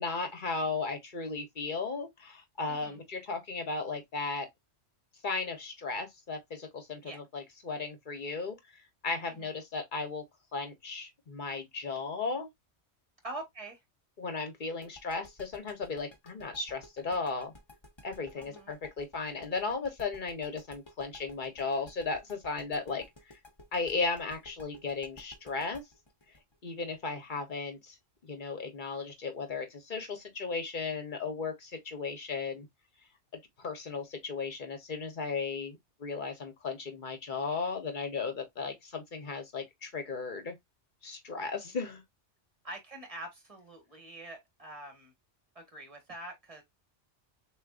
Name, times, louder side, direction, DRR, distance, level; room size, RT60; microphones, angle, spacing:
voice 1, 0.0-4.5 5.2-10.2 10.5-12.5 14.2-17.5 18.0-23.4 23.7-25.8 26.6-28.0 28.2-32.7 33.3-40.6 41.0-42.0, left 4 dB, 45° left, 1.3 m, -36 dB
voice 2, 2.7-3.0 7.0-7.2 9.3-9.5 13.2-13.8 18.3-18.7 42.6-45.1 45.5-46.6, right 1 dB, 30° right, 1.7 m, -45 dB
sound 1, 14.8-27.6, left 2 dB, 25° left, 1.2 m, -53 dB
6.5 x 2.8 x 2.5 m
omnidirectional pair, 1.2 m